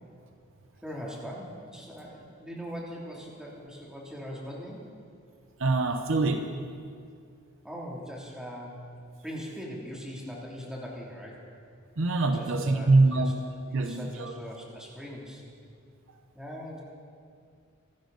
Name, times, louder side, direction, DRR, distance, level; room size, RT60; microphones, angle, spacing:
voice 1, 0.8-4.8 7.6-8.9 9.2-11.4 12.3-13.3 13.7-15.4 16.3-16.8, equal, 5° right, -4 dB, 2.8 m, -40 dB
voice 2, 5.6-6.7 12.0-13.4 13.7-14.4, right 3 dB, 65° right, 6 dB, 0.9 m, -24 dB
24.5 x 12.0 x 4.0 m, 2.3 s
head